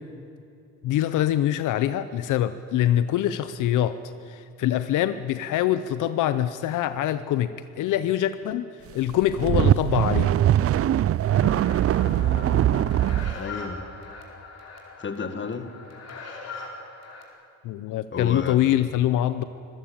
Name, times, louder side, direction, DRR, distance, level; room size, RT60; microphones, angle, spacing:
voice 1, 0.8-4.0 4.3-7.5 7.8-8.7 8.9-10.3 17.6-19.4, left 12 dB, 85° left, 12 dB, 0.8 m, -24 dB
sound 1, 9.1-13.4, right 12 dB, 50° right, 0.5 m, -21 dB
sound 2, 11.3-17.2, left 3 dB, 55° left, 4.5 m, -41 dB
voice 2, 12.0-13.1 13.3-13.8 15.0-15.7 18.1-18.6, left 5 dB, 40° left, 9 dB, 1.9 m, -33 dB
25.5 x 15.0 x 8.7 m, 2.7 s
cardioid pair, 90°, 30 cm